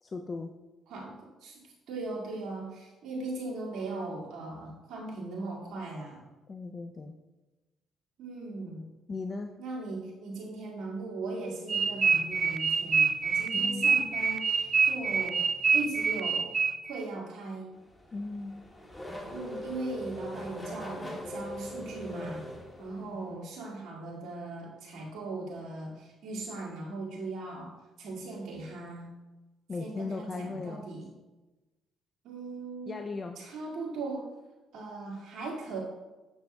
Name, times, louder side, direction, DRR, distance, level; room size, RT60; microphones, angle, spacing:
voice 1, 0.0-0.5 6.5-7.1 9.1-9.5 13.5-14.0 18.1-18.6 23.1-23.3 29.7-30.8 32.9-33.4, left 3 dB, 40° left, 5 dB, 0.5 m, -37 dB
voice 2, 0.9-1.6 1.9-6.2 8.2-8.9 9.6-15.4 15.7-16.5 16.9-17.7 19.3-22.5 22.8-29.1 29.8-31.1 32.2-33.0 33.4-34.2 34.7-35.8, right 3 dB, 70° right, -4 dB, 2.1 m, -39 dB
sound 1, 11.7-17.0, right 5 dB, 40° right, 0.4 m, -26 dB
Race car auto racing / Accelerating revving vroom, 17.8-23.3, left 1 dB, 20° left, 1.7 m, -41 dB
8.1 x 6.5 x 2.3 m, 1.1 s
supercardioid pair, 60°, 0 cm